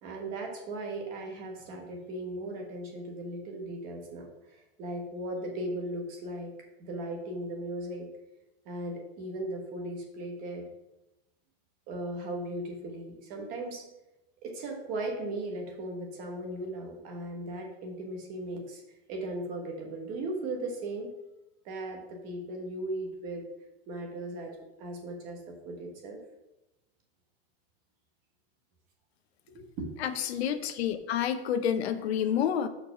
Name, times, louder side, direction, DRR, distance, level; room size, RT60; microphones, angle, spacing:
voice 1, 0.0-6.5 6.8-8.1 8.6-10.6 11.9-13.9 14.4-18.8 19.1-21.1 21.6-23.4 23.9-26.2 29.5-29.9, right 1 dB, 25° right, 2 dB, 1.2 m, -37 dB
voice 2, 30.0-32.7, left 9 dB, 80° left, 10 dB, 0.8 m, -29 dB
6.7 x 4.7 x 5.6 m, 0.96 s
supercardioid pair, 175°, 31 cm